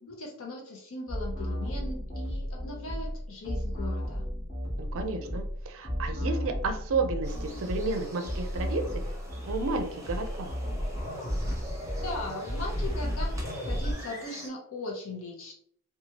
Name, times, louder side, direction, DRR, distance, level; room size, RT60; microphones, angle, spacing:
voice 1, 0.0-4.2 12.0-13.4 13.7-15.6, left 2 dB, 65° left, -1 dB, 0.7 m, -39 dB
sound 1, 1.1-13.9, equal, 35° left, 0.9 m, -33 dB
voice 2, 4.8-8.8 9.4-10.6, right 3 dB, 65° right, 6 dB, 0.5 m, -32 dB
sound 2, 7.2-14.5, equal, 15° right, 0.7 m, -45 dB
2.8 x 2.3 x 2.7 m, 0.64 s
head